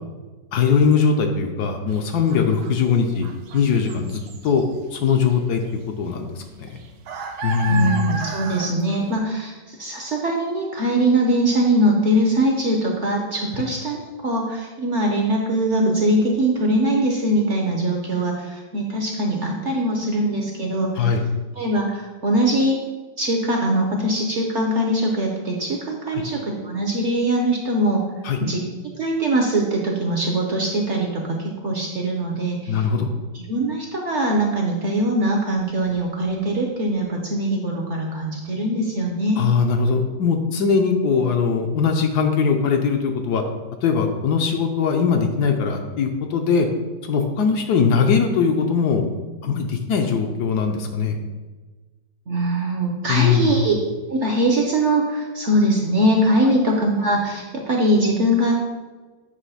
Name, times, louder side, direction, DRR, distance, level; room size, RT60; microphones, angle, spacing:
voice 1, 0.5-3.3 3.5-6.8 7.4-8.1 21.0-21.2 26.1-26.2 28.2-28.4 32.7-33.1 39.4-43.4 43.8-46.7 47.1-49.1 49.4-51.2 53.1-53.5, left 5 dB, 70° left, 4 dB, 1.1 m, -20 dB
sound 1, 1.9-2.0 2.3-4.7 4.9-5.3 5.6-5.7 6.1-9.2, right 4 dB, 70° right, 1.2 m, -33 dB
voice 2, 7.7-14.0 14.2-21.1 21.6-22.8 23.2-28.0 28.4-28.6 28.9-32.8 33.3-39.4 52.3-53.7 54.1-58.6, right 1 dB, 55° right, 0 dB, 0.9 m, -22 dB
8.2 x 3.1 x 5.6 m, 1.3 s
omnidirectional pair, 1.9 m